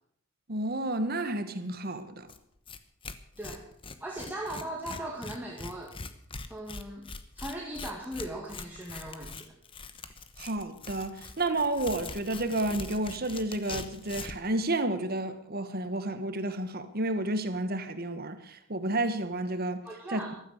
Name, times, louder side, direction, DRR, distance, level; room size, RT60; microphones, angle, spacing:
voice 1, 0.5-2.3 10.4-19.8 20.1-20.2, right 2 dB, 45° right, 1.4 m, -31 dB
Tearing, 2.3-2.4 2.7-2.8 3.0-14.5, left 4 dB, 25° left, 0.9 m, -42 dB
voice 2, 4.0-5.9 6.5-9.5 19.8-20.3, right 1 dB, 10° right, 1.9 m, -39 dB
15.0 x 13.0 x 6.4 m
head